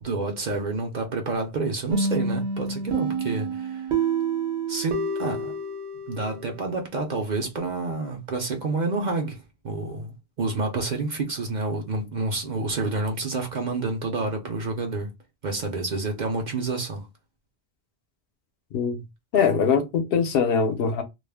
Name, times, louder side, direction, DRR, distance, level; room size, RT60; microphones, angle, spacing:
voice 1, 0.0-3.9 4.7-5.5 6.1-9.4 9.6-15.1 15.4-17.0, right 3 dB, 50° right, 0.6 m, -29 dB
sound 1, 1.9-6.6, right 4 dB, 85° right, 0.9 m, -28 dB
voice 2, 18.7-19.0 19.3-21.0, left 6 dB, 70° left, 0.7 m, -22 dB
2.3 x 2.0 x 3.2 m
omnidirectional pair, 1.1 m